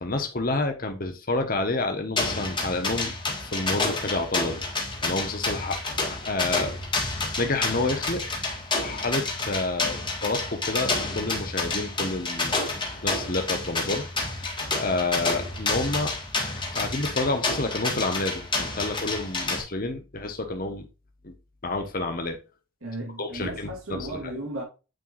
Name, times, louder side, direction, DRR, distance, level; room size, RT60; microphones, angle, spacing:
voice 1, 0.0-3.1 3.4-4.6 5.0-5.8 6.0-6.7 7.0-8.2 8.8-12.6 13.0-14.4 14.8-16.1 16.7-20.9 21.2-21.3 21.6-22.4 23.2-24.2, left 2 dB, 40° left, 1.2 m, -29 dB
sound 1, 2.2-19.6, left 3 dB, 20° left, 1.6 m, -29 dB
voice 2, 22.8-24.6, right 1 dB, 70° right, 2.2 m, -35 dB
9.1 x 4.6 x 2.5 m
head